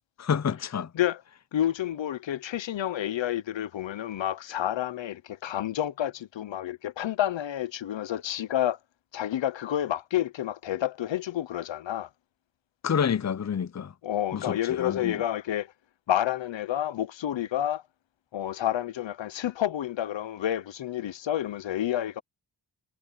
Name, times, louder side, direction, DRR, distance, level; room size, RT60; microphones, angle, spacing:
voice 1, 0.2-0.9 12.8-13.9 14.3-15.2, left 7 dB, 35° left, 0.8 m, -28 dB
voice 2, 1.5-8.8 9.1-12.1 14.0-15.7 16.1-17.8 18.3-22.2, left 12 dB, 80° left, 1.0 m, -29 dB
supercardioid pair, 40°, 45 cm